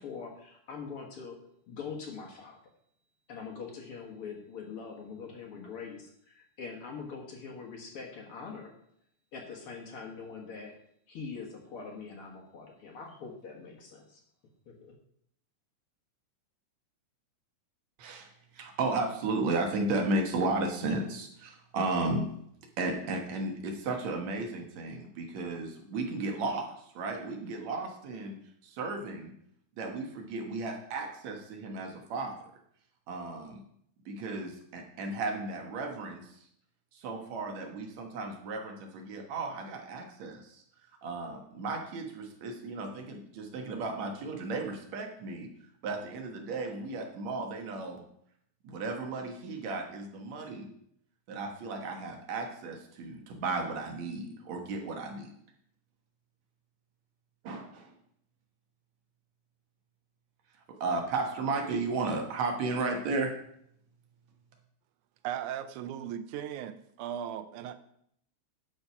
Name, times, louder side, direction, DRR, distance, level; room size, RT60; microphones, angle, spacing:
voice 1, 0.0-1.4 1.7-2.6 3.3-8.7 9.3-10.8 11.1-14.2 14.7-15.0, left 5 dB, 55° left, 1 dB, 2.0 m, -43 dB
voice 2, 18.0-22.3 22.8-28.3 28.6-29.3 29.8-32.4 33.1-33.6 34.1-36.4 36.9-40.6 41.0-45.5 45.8-48.0 48.6-50.7 51.3-55.3 57.4-57.9 60.8-63.3, right 3 dB, 70° right, 2 dB, 2.5 m, -34 dB
voice 3, 65.2-67.8, right 10 dB, 85° right, 11 dB, 2.1 m, -37 dB
11.5 x 4.8 x 5.8 m, 0.70 s
omnidirectional pair, 3.4 m